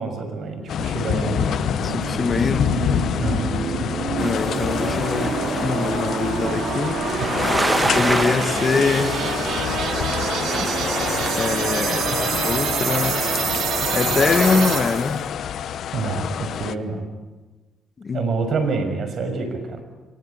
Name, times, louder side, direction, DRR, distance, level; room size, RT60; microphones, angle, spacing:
voice 1, 0.0-1.5 3.2-3.5 7.2-7.3 15.9-17.1 18.1-19.8, right 4 dB, 60° right, 8 dB, 6.4 m, -27 dB
sound 1, 0.7-16.8, left 9 dB, 70° left, 1.0 m, -26 dB
sound 2, 1.2-15.2, right 8 dB, 75° right, 2.5 m, -27 dB
voice 2, 1.8-2.7 4.2-7.0 7.9-9.1 11.4-13.2 13.9-15.2 18.0-18.2, left 4 dB, 40° left, 10 dB, 1.8 m, -23 dB
sound 3, 4.2-11.4, right 2 dB, 20° right, 1.9 m, -29 dB
25.5 x 22.5 x 9.8 m, 1.2 s
cardioid pair, 90°, 0 cm